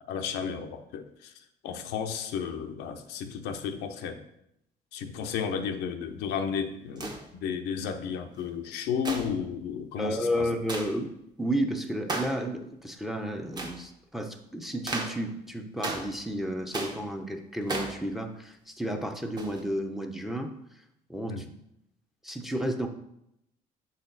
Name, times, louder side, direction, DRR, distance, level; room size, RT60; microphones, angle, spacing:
voice 1, 0.0-4.2 4.9-10.5 21.3-21.5, left 7 dB, 90° left, 6 dB, 0.7 m, -33 dB
sound 1, 7.0-7.3 9.0-9.4 10.7-10.9 12.1-12.4 13.5-13.8 14.9-15.2 15.8-16.2 16.7-17.1 17.7-18.0 19.4-19.6, right 2 dB, 25° right, 1.0 m, -34 dB
voice 2, 10.0-11.1 11.4-20.5 21.1-21.4 22.2-22.9, equal, ahead, 4 dB, 0.7 m, -32 dB
6.6 x 4.2 x 3.9 m, 0.79 s
cardioid pair, 110°, 17 cm